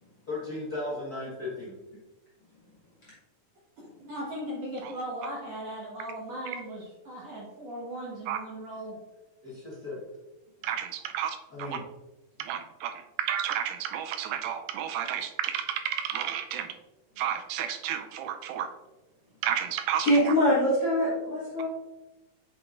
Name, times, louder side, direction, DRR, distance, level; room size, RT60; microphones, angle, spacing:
voice 1, 0.3-1.7 9.4-10.0 11.5-11.8, left 2 dB, 70° left, -8 dB, 0.8 m, -36 dB
voice 2, 3.8-9.0, right 1 dB, 50° right, -7 dB, 2.4 m, -38 dB
voice 3, 10.6-11.8 12.5-16.7 17.2-18.7 19.4-20.3, right 10 dB, 80° right, 7 dB, 2.2 m, -32 dB
voice 4, 20.0-21.7, equal, 30° left, -6 dB, 2.2 m, -23 dB
8.0 x 5.7 x 2.5 m, 1.1 s
omnidirectional pair, 4.3 m